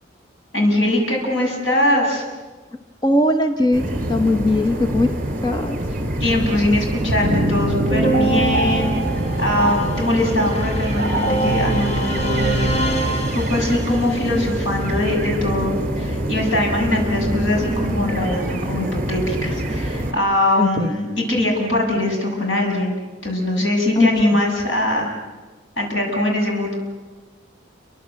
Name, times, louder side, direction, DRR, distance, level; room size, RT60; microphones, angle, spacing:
voice 1, 0.5-2.2 6.2-9.0 9.4-12.5 13.0-25.1 25.8-26.8, left 1 dB, 80° left, 0 dB, 7.7 m, -21 dB
voice 2, 3.0-3.8 4.1-5.1 5.4-5.8 20.6-20.9 24.0-24.4, left 1 dB, 20° left, 5 dB, 1.1 m, -19 dB
sound 1, 3.7-20.1, right 1 dB, 40° right, 3.7 m, -25 dB
sound 2, 7.2-14.0, right 2 dB, 40° left, 4.5 m, -23 dB
29.0 x 24.5 x 7.7 m, 1.3 s
head